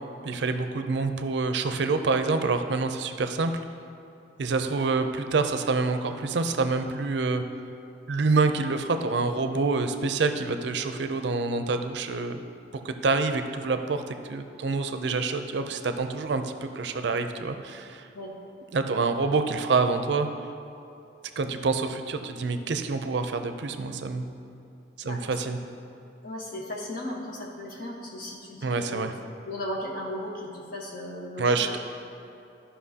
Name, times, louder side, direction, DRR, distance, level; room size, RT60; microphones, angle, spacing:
voice 1, 0.2-3.5 4.4-7.4 8.1-12.4 12.8-18.1 18.7-20.3 21.4-24.3 25.0-25.6 28.6-29.1 31.4-31.8, right 3 dB, 70° right, 8 dB, 0.5 m, -27 dB
voice 2, 25.0-25.4 26.2-29.1 29.4-31.8, left 1 dB, 55° left, -2 dB, 1.3 m, -36 dB
13.0 x 5.6 x 2.8 m, 2.8 s
head